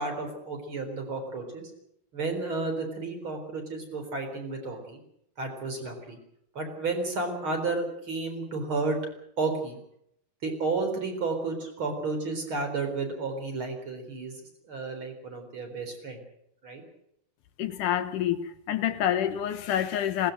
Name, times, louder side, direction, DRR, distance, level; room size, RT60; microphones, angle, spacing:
voice 1, 0.0-1.6 2.1-5.0 5.4-6.2 6.5-9.0 9.4-9.8 10.4-16.2 16.6-16.8, right 3 dB, 30° right, 4.6 m, -32 dB
voice 2, 17.6-20.3, left 10 dB, 65° left, 2.2 m, -27 dB
20.5 x 19.0 x 7.9 m
omnidirectional pair, 4.7 m